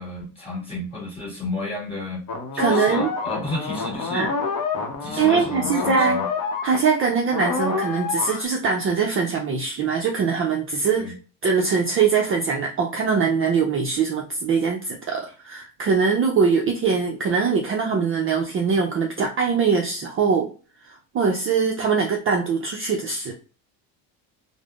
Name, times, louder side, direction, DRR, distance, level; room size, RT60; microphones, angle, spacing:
voice 1, 0.0-2.2 2.5-4.3 5.0-6.3 11.0-11.1, left 2 dB, 10° left, 1.4 m, -32 dB
sound 1, 2.3-7.0 7.3-8.4, left 4 dB, 45° left, 0.7 m, -27 dB
voice 2, 2.6-3.1 4.1-4.3 5.2-6.2 6.6-11.1 11.4-20.5 20.8-23.3, right 5 dB, 30° right, 0.4 m, -22 dB
3.4 x 2.0 x 2.3 m
supercardioid pair, 105°, 47 cm